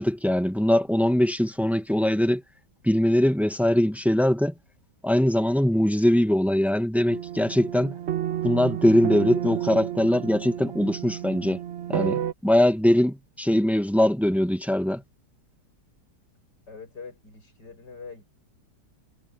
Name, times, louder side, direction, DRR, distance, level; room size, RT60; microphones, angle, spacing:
voice 1, 0.0-2.4 2.8-4.5 5.0-8.0 8.4-11.6 11.9-15.0, left 1 dB, ahead, 0.8 m, -22 dB
sound 1, 7.1-12.3, right 11 dB, 50° right, 0.8 m, -31 dB
voice 2, 16.7-18.2, left 5 dB, 75° left, 7.9 m, -43 dB
omnidirectional pair, 1.9 m